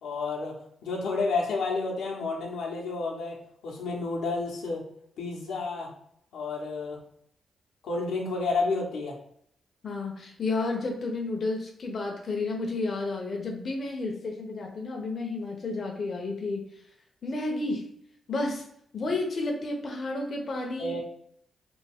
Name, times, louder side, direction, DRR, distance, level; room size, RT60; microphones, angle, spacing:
voice 1, 0.0-0.5 0.8-3.4 3.6-4.8 5.2-5.9 6.3-7.0 7.8-9.1 20.8-21.0, left 3 dB, 85° left, -2 dB, 0.8 m, -30 dB
voice 2, 9.8-16.7 17.2-17.9 18.3-18.7 18.9-21.0, left 2 dB, 55° left, 1 dB, 0.7 m, -31 dB
3.4 x 2.4 x 3.4 m, 0.70 s
cardioid pair, 60°, 0 cm